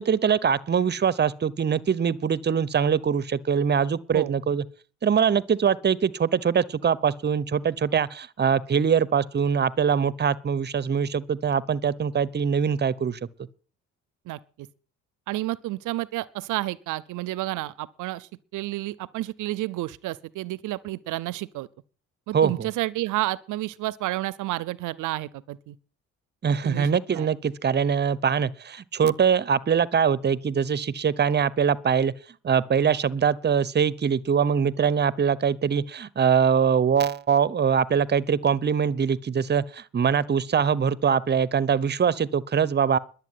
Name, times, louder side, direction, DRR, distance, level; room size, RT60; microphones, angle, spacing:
voice 1, 0.0-4.6 5.0-13.2 22.3-22.7 26.4-32.1 32.4-43.0, right 7 dB, 35° right, 0.9 m, -23 dB
voice 2, 14.3-14.7 15.3-21.7 22.3-25.8 26.6-26.9 27.1-27.3, right 17 dB, 85° right, 0.6 m, -30 dB
11.0 x 8.2 x 9.4 m
cardioid pair, 90°, 30 cm